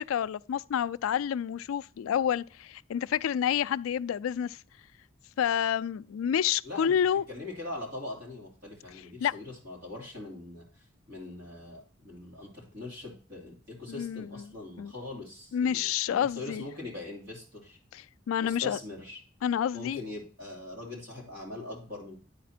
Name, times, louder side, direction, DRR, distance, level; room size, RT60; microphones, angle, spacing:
voice 1, 0.0-4.6 5.4-7.2 9.2-9.3 13.9-14.4 14.8-14.9 15.5-16.6 17.9-18.8 19.4-20.0, left 8 dB, 90° left, 0.3 m, -29 dB
voice 2, 6.6-6.9 7.3-10.6 11.1-17.8 18.4-19.2 19.7-22.2, left 2 dB, 50° right, 3.4 m, -42 dB
10.0 x 4.2 x 4.3 m
head